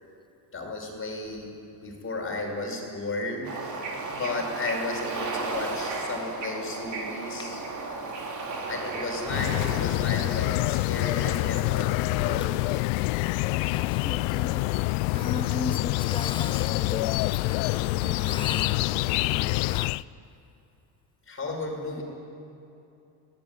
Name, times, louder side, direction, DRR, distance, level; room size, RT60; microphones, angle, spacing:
voice 1, 0.5-1.5 1.8-7.6 8.7-12.7 21.3-22.0, left 2 dB, 25° left, 1 dB, 5.9 m, -34 dB
Bird / Ocean, 3.4-9.9, right 3 dB, 35° right, 4.1 m, -34 dB
sound 1, 9.3-20.0, left 21 dB, 75° left, 0.6 m, -26 dB
voice 2, 13.2-20.0, left 3 dB, 10° left, 11 dB, 0.9 m, -38 dB
25.5 x 17.5 x 10.0 m, 2.7 s
supercardioid pair, 115°, 49 cm